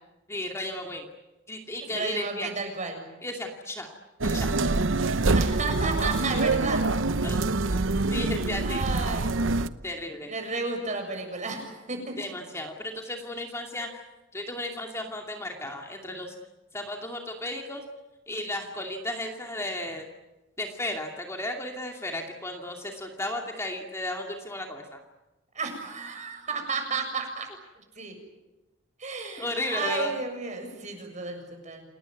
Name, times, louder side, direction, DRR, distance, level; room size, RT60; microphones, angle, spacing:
voice 1, 0.3-1.1 1.5-2.5 3.2-3.9 4.2-4.6 7.2-7.4 7.7-7.8 8.1-8.8 9.8-10.3 12.2-14.0 14.3-16.3 16.7-17.8 18.3-20.0 20.6-25.0 29.4-30.1, left 1 dB, 15° left, 2 dB, 2.5 m, -34 dB
voice 2, 1.8-3.0 5.3-6.8 8.0-8.2 8.6-9.3 10.3-12.2 25.5-27.5 27.8-28.2 29.0-31.8, right 3 dB, 40° right, 5 dB, 7.1 m, -33 dB
sound 1, 4.2-9.7, right 3 dB, 85° right, 0.9 m, -25 dB
28.5 x 19.5 x 9.3 m, 1.0 s
head